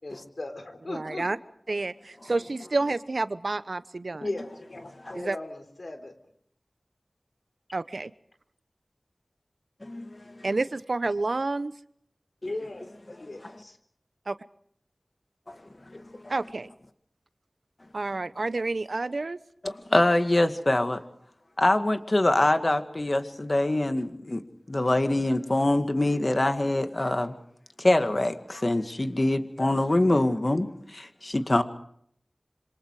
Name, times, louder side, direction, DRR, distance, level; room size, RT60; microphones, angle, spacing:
voice 1, 0.0-1.3 4.2-6.1 12.4-12.9 13.2-13.8, left 2 dB, 70° left, 4.0 m, -37 dB
voice 2, 0.9-1.4 1.7-4.3 5.1-5.4 7.7-8.1 10.4-11.7 14.3-14.4 16.3-16.7 17.9-19.4, right 3 dB, 80° right, 0.9 m, -29 dB
voice 3, 9.8-10.5 12.4-12.5 13.4-13.5 15.5-15.6 15.9-16.3 19.6-21.0 21.6-24.4 24.7-27.3 27.8-31.6, left 1 dB, 45° left, 2.1 m, -25 dB
27.0 x 26.0 x 4.9 m
wide cardioid pair, 50°, 0 cm